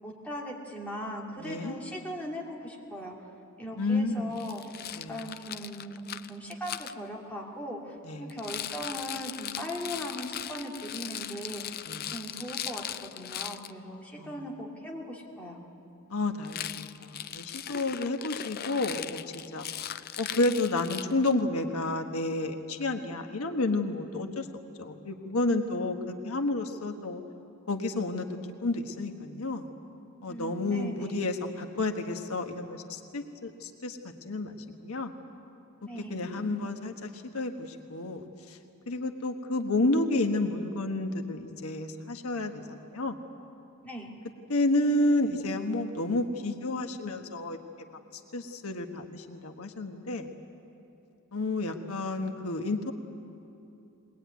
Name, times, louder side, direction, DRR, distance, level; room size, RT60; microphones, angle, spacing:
voice 1, 0.0-3.2 3.6-4.6 5.1-6.0 6.3-11.8 12.1-15.6 30.3-31.2 35.8-36.8 43.8-44.1, equal, 5° left, -3 dB, 2.6 m, -39 dB
voice 2, 1.4-1.8 3.8-4.3 4.9-5.2 8.0-8.2 11.9-12.0 14.2-14.3 16.1-19.7 20.2-24.5 24.8-27.2 27.7-28.3 28.6-29.7 30.2-34.0 34.2-34.6 34.8-35.1 36.1-38.6 38.9-43.2 44.5-47.6 48.3-50.3 51.3-52.9, left 2 dB, 85° left, 5 dB, 1.3 m, -30 dB
Rattle, 4.4-6.9 8.3-13.7 16.4-21.4, left 10 dB, 45° left, 0.5 m, -39 dB
22.0 x 20.0 x 9.4 m, 2.8 s
head